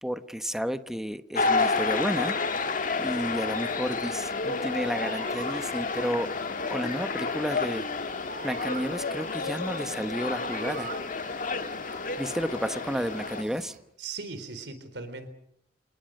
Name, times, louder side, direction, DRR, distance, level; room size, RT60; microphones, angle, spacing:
voice 1, 0.0-2.4 3.0-6.3 6.7-7.9 8.4-10.9 12.2-13.7, equal, 5° right, 11 dB, 1.0 m, -31 dB
sound 1, 1.3-13.4, left 4 dB, 50° left, 1.5 m, -30 dB
sound 2, 1.4-13.8, right 4 dB, 50° right, 4.5 m, -47 dB
voice 2, 14.0-15.3, right 4 dB, 85° right, 11 dB, 4.2 m, -38 dB
28.0 x 19.5 x 6.5 m, 0.71 s
head